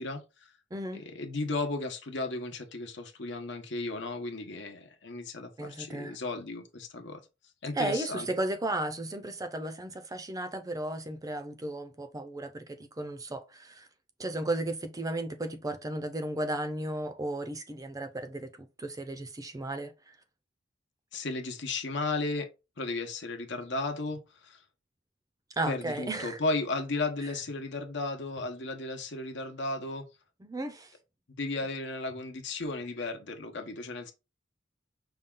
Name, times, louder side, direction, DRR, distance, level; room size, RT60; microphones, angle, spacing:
voice 1, 0.0-0.5 0.9-7.2 7.6-8.3 21.1-22.5 22.8-24.6 25.7-30.0 31.4-34.1, left 3 dB, 70° left, 0.9 m, -34 dB
voice 2, 0.7-1.0 5.6-6.2 7.7-12.6 13.0-13.9 14.2-20.1 25.6-26.4 30.4-30.9, right 1 dB, 20° right, 0.5 m, -34 dB
5.4 x 2.3 x 3.7 m
head